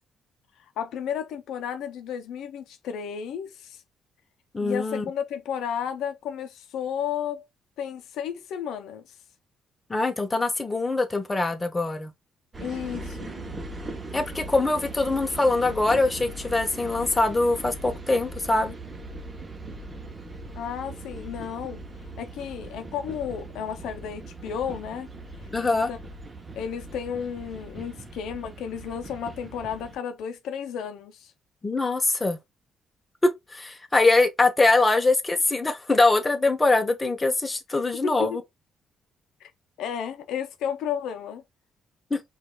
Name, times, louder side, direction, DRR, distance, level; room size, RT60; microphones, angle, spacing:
voice 1, 0.8-3.8 4.6-7.4 7.8-9.0 12.6-13.5 20.6-21.8 22.2-25.1 25.6-26.0 26.6-31.3 38.0-38.4 39.4-39.5 39.8-41.4, left 8 dB, 85° left, 0.5 m, -33 dB
voice 2, 4.5-5.0 9.9-12.1 14.1-18.7 25.5-25.9 31.6-32.4 33.5-38.4 42.1-42.2, left 3 dB, 20° left, 0.8 m, -23 dB
sound 1, 12.5-30.0, right 2 dB, 30° right, 0.7 m, -40 dB
5.0 x 2.4 x 2.2 m
cardioid pair, 90°, 0 cm